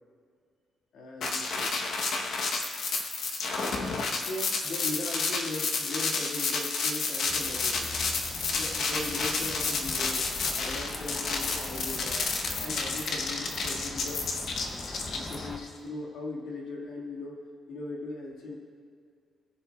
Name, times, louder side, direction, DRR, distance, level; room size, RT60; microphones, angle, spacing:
voice 1, 0.9-1.8 4.2-7.9 8.5-10.2 10.5-12.3 12.6-14.3 15.1-17.4 17.7-18.6, left 2 dB, 80° left, -2 dB, 1.8 m, -39 dB
sound 1, 1.2-15.7, left 4 dB, 55° left, 0.9 m, -30 dB
sound 2, 7.3-15.6, left 2 dB, 20° left, 0.6 m, -42 dB
19.5 x 7.2 x 2.3 m, 2.2 s
cardioid pair, 170°, 0 cm